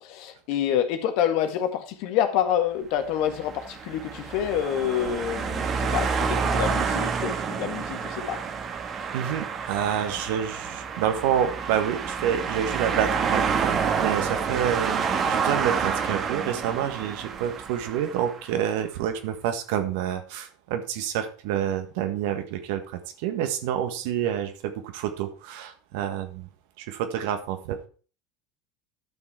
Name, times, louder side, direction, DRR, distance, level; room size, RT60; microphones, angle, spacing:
voice 1, 0.0-8.4, left 10 dB, 65° left, 7 dB, 1.7 m, -27 dB
sound 1, 3.1-18.5, right 6 dB, 40° right, 1.6 m, -28 dB
voice 2, 9.1-15.0 15.3-26.5 26.8-27.9, right 9 dB, 70° right, 7 dB, 1.6 m, -28 dB
11.5 x 6.2 x 4.7 m, 0.38 s
hypercardioid pair, 85°, 0 cm